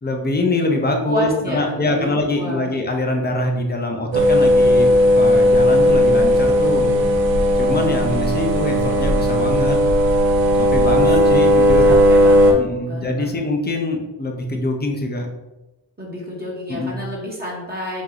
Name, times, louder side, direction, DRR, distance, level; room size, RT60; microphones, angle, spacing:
voice 1, 0.0-6.9 7.5-9.8 10.6-11.9 12.6-15.3 16.7-17.0, left 1 dB, 20° left, 2 dB, 0.7 m, -23 dB
voice 2, 1.1-2.7 6.6-7.2 10.8-11.5 11.8-12.6 12.8-13.4 16.0-18.0, left 1 dB, 20° right, -5 dB, 1.1 m, -29 dB
sound 1, 4.1-12.5, equal, 90° right, 0.7 m, -15 dB
3.7 x 3.1 x 3.8 m, 1.0 s
cardioid pair, 75°, 44 cm